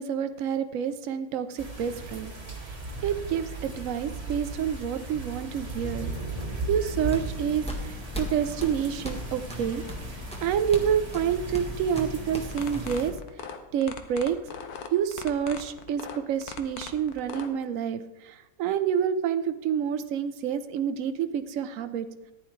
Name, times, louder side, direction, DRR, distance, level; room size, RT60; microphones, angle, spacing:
voice 1, 0.0-2.3 3.0-6.1 6.7-9.8 10.4-13.1 13.7-14.4 14.9-22.1, right 8 dB, 60° right, 10 dB, 1.0 m, -28 dB
sound 1, 1.6-13.1, right 2 dB, 25° right, 1.7 m, -37 dB
sound 2, 6.9-13.2, equal, 5° left, 1.4 m, -38 dB
sound 3, 12.5-17.5, left 7 dB, 75° left, 1.4 m, -39 dB
14.0 x 10.5 x 3.2 m, 1.0 s
omnidirectional pair, 1.7 m